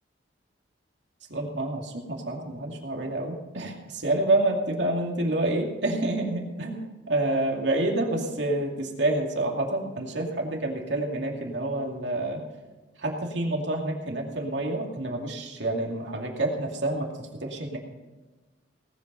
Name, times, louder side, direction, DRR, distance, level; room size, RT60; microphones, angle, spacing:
voice 1, 1.3-12.4 13.0-17.1 17.4-17.8, right 2 dB, 70° right, 0 dB, 2.4 m, -28 dB
18.5 x 8.1 x 5.4 m, 1.2 s
head